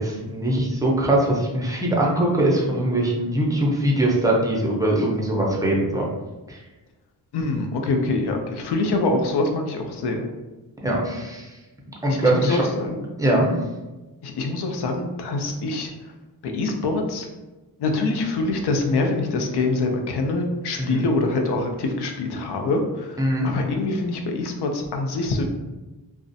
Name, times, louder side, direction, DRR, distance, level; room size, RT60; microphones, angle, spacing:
voice 1, 0.0-6.0 6.5-6.6 10.8-11.5 12.0-12.6 13.2-13.5 20.8-21.0 23.2-23.5, right 1 dB, 10° right, -3 dB, 0.5 m, -22 dB
voice 2, 7.3-10.3 12.1-13.0 14.2-15.9 16.4-17.3 17.8-25.4, left 2 dB, 70° left, 3 dB, 0.5 m, -25 dB
2.4 x 2.1 x 2.6 m, 1.1 s
cardioid pair, 85°, 41 cm